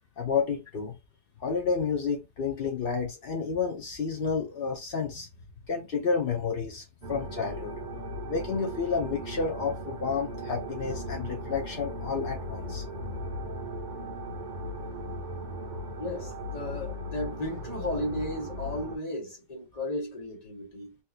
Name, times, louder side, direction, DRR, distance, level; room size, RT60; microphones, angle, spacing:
voice 1, 0.2-1.0 1.4-5.3 5.7-7.8 8.3-12.9, left 5 dB, 65° left, 0.5 m, -30 dB
sound 1, 7.0-19.0, equal, 50° right, 0.5 m, -37 dB
voice 2, 16.0-21.0, left 1 dB, 25° left, 0.9 m, -34 dB
3.6 x 2.8 x 2.5 m
omnidirectional pair, 2.0 m